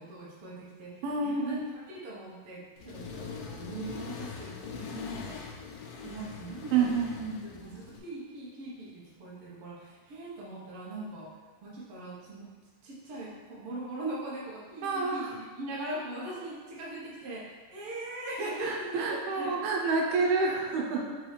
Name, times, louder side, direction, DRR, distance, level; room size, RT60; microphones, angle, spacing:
voice 1, 0.0-1.6 1.9-5.4 6.0-7.2 7.6-11.3 11.6-12.5 12.8-19.6 20.3-20.4, right 2 dB, 65° right, -6 dB, 1.4 m, -40 dB
voice 2, 1.0-1.6 6.7-7.4 14.8-15.3 18.6-21.1, right 4 dB, 85° right, -1 dB, 2.4 m, -28 dB
Accelerating revving vroom, 2.8-8.0, left 6 dB, 80° left, 1.9 m, -42 dB
5.4 x 3.0 x 3.2 m, 1.5 s
omnidirectional pair, 4.0 m